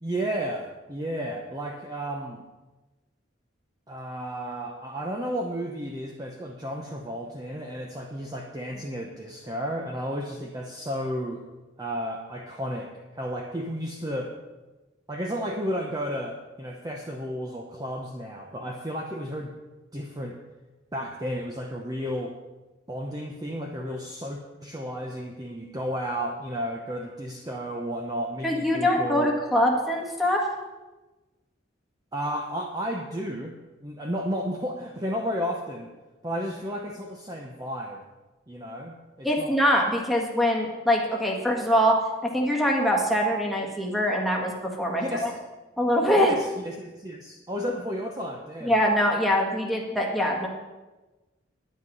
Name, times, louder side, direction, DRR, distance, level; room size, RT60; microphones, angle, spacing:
voice 1, 0.0-2.4 3.9-11.4 11.8-14.3 15.1-19.5 19.9-20.4 20.9-22.3 22.9-29.3 32.1-35.9 36.2-38.0 38.5-39.6 45.0-45.4 46.2-48.7, equal, 20° right, 1 dB, 0.8 m, -33 dB
voice 2, 28.4-30.4 39.2-45.3 45.8-46.3 48.6-50.5, equal, ahead, -1 dB, 1.6 m, -23 dB
10.0 x 9.8 x 5.5 m, 1.1 s
head